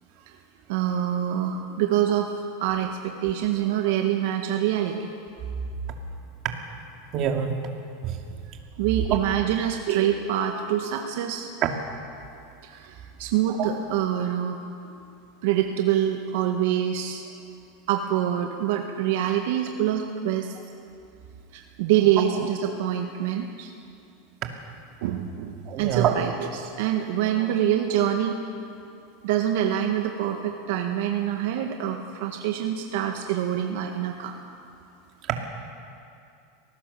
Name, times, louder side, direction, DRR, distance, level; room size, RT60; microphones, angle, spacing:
voice 1, 0.7-2.3 2.6-5.1 8.8-11.5 12.6-14.6 15.4-17.2 17.9-20.6 21.5-23.7 25.0-28.4 29.2-34.4, right 10 dB, 70° right, 3 dB, 1.7 m, -25 dB
voice 2, 7.1-7.5 8.0-8.2 9.1-9.2 11.6-11.7 13.6-13.7 25.7-26.2, right 10 dB, 45° right, 3 dB, 2.5 m, -24 dB
24.0 x 18.5 x 7.0 m, 2.5 s
supercardioid pair, 130°, 0 cm